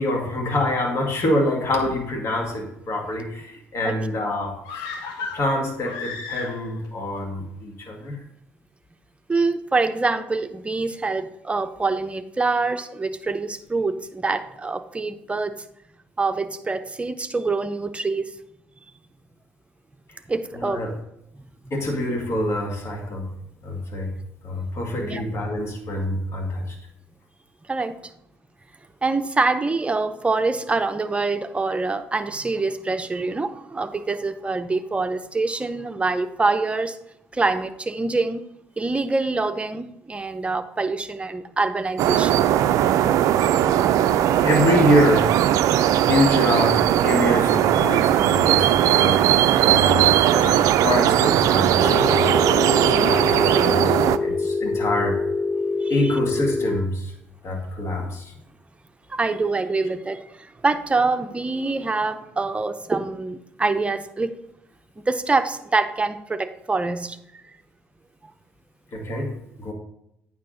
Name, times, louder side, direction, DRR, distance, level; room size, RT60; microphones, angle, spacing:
voice 1, 0.0-4.9 5.3-8.2 20.6-20.9 21.7-23.3 23.6-24.1 24.4-26.8 44.4-45.3 46.0-49.3 49.6-52.3 52.7-53.9 54.2-55.2 55.9-57.1 57.4-58.3 68.9-69.7, left 1 dB, 45° left, 1 dB, 2.0 m, -25 dB
sound 1, 4.6-6.9 7.2-7.3, left 4 dB, 70° left, 1.0 m, -34 dB
voice 2, 9.3-15.6 16.2-18.3 20.3-20.9 25.0-25.2 27.6-28.0 29.0-37.0 37.3-38.4 38.8-42.4 55.8-56.1 59.1-64.3 65.0-67.4 68.2-68.3, right 3 dB, 20° right, 8 dB, 0.8 m, -25 dB
sound 2, 42.0-54.2, right 11 dB, 60° right, 0.4 m, -18 dB
Telephone, 51.8-56.8, left 3 dB, 15° left, 0.6 m, -25 dB
8.9 x 5.7 x 4.0 m, 0.79 s
hypercardioid pair, 55°, 6 cm